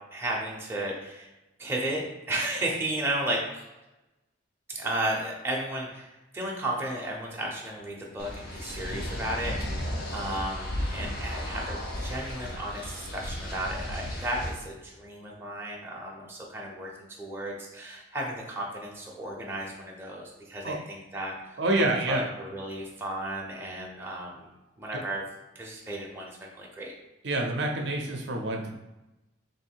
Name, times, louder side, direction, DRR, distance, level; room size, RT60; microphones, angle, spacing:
voice 1, 0.1-1.3 1.6-3.6 4.7-16.9 17.2-24.4 24.8-25.2 25.5-26.9, right 1 dB, 10° right, -3 dB, 0.6 m, -34 dB
sound 1, 8.2-14.5, left 1 dB, 50° left, 0.7 m, -34 dB
voice 2, 21.6-22.3 24.9-25.0 27.2-28.7, right 2 dB, 60° right, 1 dB, 0.5 m, -27 dB
3.1 x 2.6 x 4.4 m, 1.0 s
head